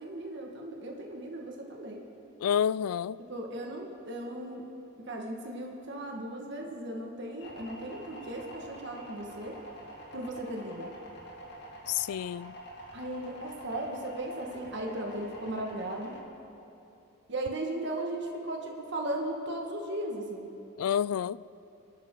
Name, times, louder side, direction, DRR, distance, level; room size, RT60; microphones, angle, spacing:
voice 1, 0.0-2.0 3.3-4.7 5.1-9.6 10.1-10.9 12.9-16.2 17.3-20.5, right 1 dB, 50° right, 1.7 m, -37 dB
voice 2, 2.4-3.2 11.9-12.5 20.8-21.4, left 9 dB, 85° left, 0.3 m, -29 dB
sound 1, 7.4-16.2, equal, 50° left, 2.5 m, -46 dB
29.0 x 11.5 x 3.9 m
head